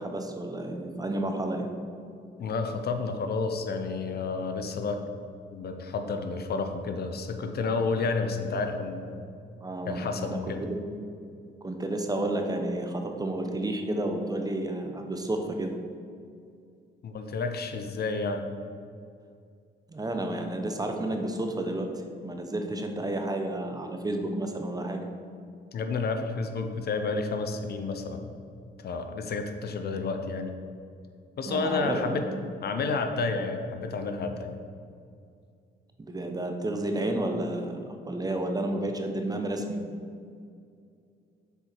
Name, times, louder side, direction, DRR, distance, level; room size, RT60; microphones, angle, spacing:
voice 1, 0.0-1.7 9.6-10.8 11.6-15.7 19.9-25.0 31.5-32.5 36.0-39.8, right 1 dB, 20° right, 4 dB, 0.7 m, -31 dB
voice 2, 2.4-5.0 5.5-9.2 9.9-10.6 17.0-18.4 25.7-28.3 28.8-30.5 31.4-32.2 32.6-34.5, left 4 dB, 55° left, 6 dB, 0.6 m, -30 dB
6.7 x 4.7 x 4.4 m, 2.3 s
cardioid pair, 90°, 20 cm